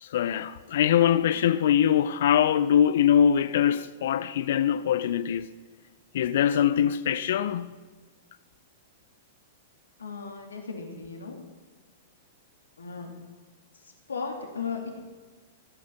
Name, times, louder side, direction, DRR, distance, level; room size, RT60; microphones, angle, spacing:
voice 1, 0.0-5.5 6.1-7.7, left 9 dB, 60° left, 0.5 m, -23 dB
voice 2, 10.0-11.4 12.8-13.1 14.1-14.9, left 5 dB, 80° left, 2.5 m, -35 dB
15.0 x 8.5 x 7.0 m
figure-of-eight pair, 105°, 0 cm